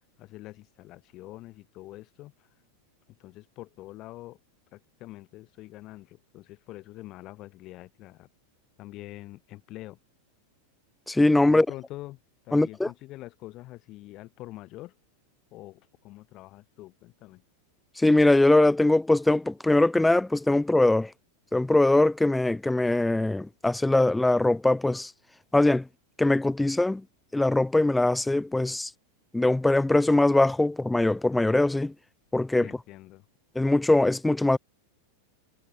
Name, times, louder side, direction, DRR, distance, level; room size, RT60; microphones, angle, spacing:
voice 1, 0.2-2.3 3.2-4.4 4.7-8.3 8.8-10.0 11.5-12.2 12.4-14.9 15.5-17.4 32.6-33.3, left 17 dB, 35° left, 1.4 m, -45 dB
voice 2, 11.1-11.7 12.5-12.9 18.0-21.1 21.5-25.1 25.5-25.9 26.2-27.0 27.3-28.9 29.3-31.9 32.3-32.7 33.6-34.6, left 2 dB, 5° left, 0.5 m, -22 dB
figure-of-eight pair, 90°, 0 cm